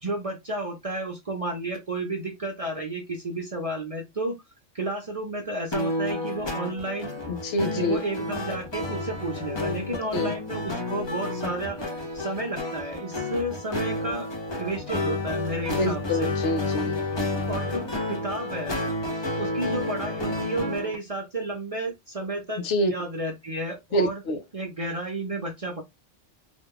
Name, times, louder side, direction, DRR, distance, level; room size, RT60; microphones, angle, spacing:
voice 1, 0.0-4.4 4.7-7.1 7.8-14.3 14.6-16.3 17.5-18.8 19.4-24.2 24.5-25.8, right 2 dB, 40° right, 0.6 m, -32 dB
sound 1, 5.7-21.0, left 2 dB, 30° left, 0.6 m, -30 dB
voice 2, 7.3-8.0 10.1-10.3 15.7-17.0 22.6-22.9 23.9-24.4, equal, 75° left, 1.0 m, -26 dB
2.8 x 2.3 x 3.6 m
omnidirectional pair, 1.2 m